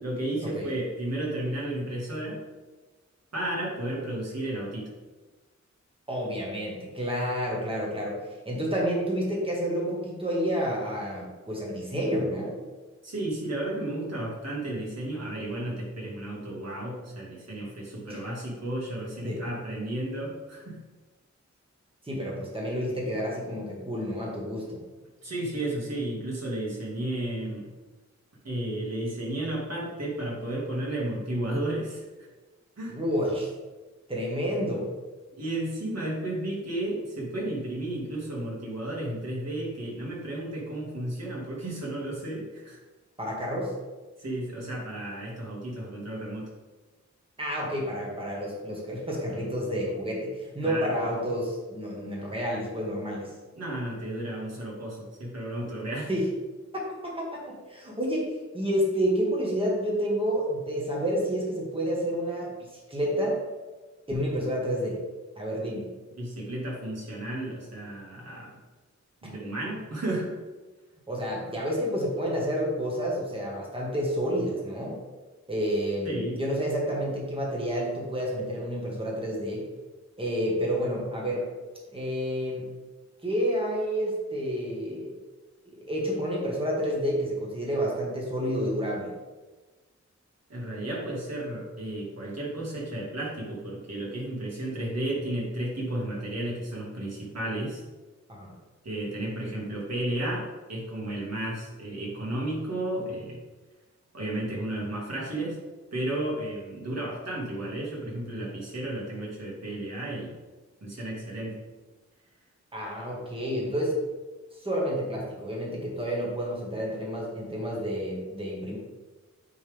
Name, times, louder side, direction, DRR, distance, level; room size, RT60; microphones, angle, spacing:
voice 1, 0.0-2.4 3.3-4.9 13.0-20.8 25.2-27.7 28.4-32.3 32.8-33.0 35.3-42.8 44.2-46.5 50.6-50.9 53.5-56.1 66.2-68.5 69.2-70.3 76.0-76.4 90.5-97.8 98.8-103.4 104.1-105.6 105.9-110.3 110.8-111.6, right 1 dB, 60° right, -5 dB, 2.2 m, -33 dB
voice 2, 6.1-8.2 8.5-12.6 18.1-18.2 19.2-19.4 22.0-24.8 32.9-33.5 34.1-34.9 43.2-43.7 47.4-53.3 56.1-56.3 57.0-62.5 62.9-63.4 64.1-65.0 65.4-65.9 69.2-69.3 71.1-75.0 75.5-79.7 80.2-81.5 81.9-82.7 83.2-85.2 85.7-89.1 98.3-98.5 112.7-114.0 114.6-118.8, equal, 20° right, -3 dB, 1.6 m, -29 dB
9.2 x 3.6 x 3.5 m, 1.2 s
wide cardioid pair, 95°, 29 cm